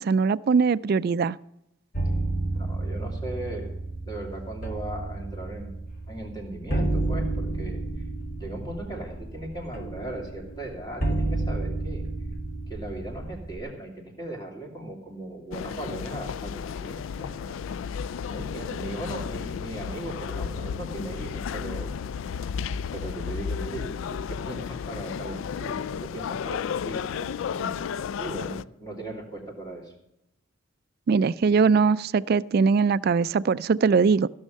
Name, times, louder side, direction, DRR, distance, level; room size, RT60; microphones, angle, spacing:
voice 1, 0.0-1.4 31.1-34.3, right 5 dB, 50° right, 18 dB, 0.3 m, -21 dB
sound 1, 1.9-13.6, right 2 dB, 45° left, 1.9 m, -31 dB
voice 2, 2.5-3.7 4.0-5.7 6.1-8.0 8.4-12.0 12.7-18.0 18.3-21.9 22.9-27.9 28.2-29.9, right 1 dB, 20° left, 0 dB, 2.7 m, -38 dB
sound 2, 15.5-28.6, left 7 dB, 75° left, 0.3 m, -33 dB
15.5 x 6.4 x 6.5 m, 0.85 s
head